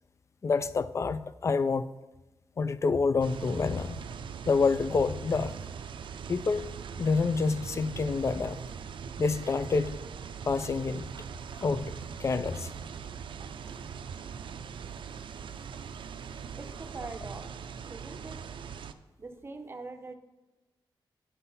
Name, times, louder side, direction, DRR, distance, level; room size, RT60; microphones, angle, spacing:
voice 1, 0.4-1.9 2.6-4.0 4.5-5.5 6.3-6.7 7.0-8.6 9.2-9.9 10.5-11.1 11.6-11.9 12.2-12.7, left 4 dB, 35° left, 15 dB, 0.3 m, -27 dB
sound 1, 3.2-18.9, right 6 dB, 80° right, 0.4 m, -41 dB
voice 2, 16.5-17.5 17.9-18.5 19.2-20.2, right 3 dB, 30° right, 7 dB, 0.6 m, -43 dB
11.0 x 5.6 x 4.1 m, 1.1 s
wide cardioid pair, 155°, 8 cm